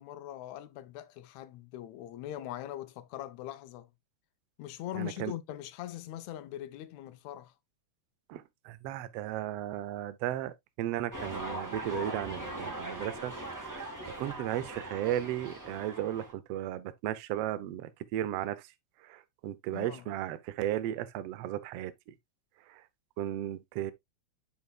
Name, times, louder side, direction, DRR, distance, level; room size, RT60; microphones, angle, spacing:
voice 1, 0.0-3.9 4.6-7.5 19.7-20.1, left 13 dB, 80° left, 1.9 m, -41 dB
voice 2, 5.0-5.3 8.3-13.3 13.6-18.6 19.0-21.9 22.7-22.8 23.2-23.9, right 12 dB, 70° right, 1.5 m, -35 dB
sound 1, 11.1-16.3, right 1 dB, 10° right, 1.1 m, -40 dB
9.4 x 5.6 x 2.3 m
omnidirectional pair, 3.3 m